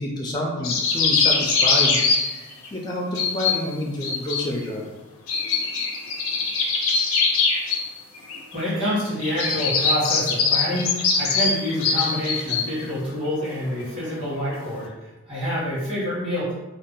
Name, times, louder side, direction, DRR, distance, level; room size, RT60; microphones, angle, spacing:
voice 1, 0.0-4.9, left 1 dB, 20° left, -2 dB, 0.3 m, -29 dB
sound 1, 0.6-2.7 3.2-3.7 4.0-4.5 5.3-7.8 8.1-8.6 9.2-12.8 13.4-13.5 13.8-14.8, left 4 dB, 90° left, 0.5 m, -22 dB
voice 2, 8.5-16.5, equal, 25° right, -9 dB, 1.2 m, -27 dB
2.6 x 2.0 x 3.8 m, 1.1 s
head